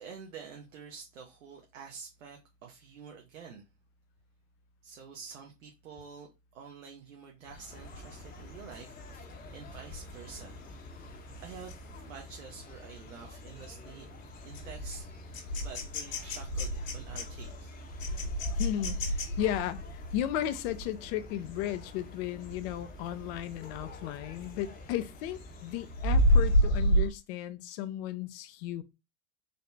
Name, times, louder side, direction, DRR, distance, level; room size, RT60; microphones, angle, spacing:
voice 1, 0.0-3.7 4.8-10.6 11.4-14.1 14.4-17.7, right 6 dB, 75° right, 1.0 m, -48 dB
sound 1, 7.5-22.0 22.4-22.7 23.1-24.7 25.1-27.1, equal, 75° left, 1.4 m, -32 dB
sound 2, 7.7-26.6, left 1 dB, 25° left, 0.9 m, -48 dB
voice 2, 18.6-28.8, left 12 dB, 50° left, 0.6 m, -35 dB
4.1 x 2.7 x 3.3 m
hypercardioid pair, 95°, 38 cm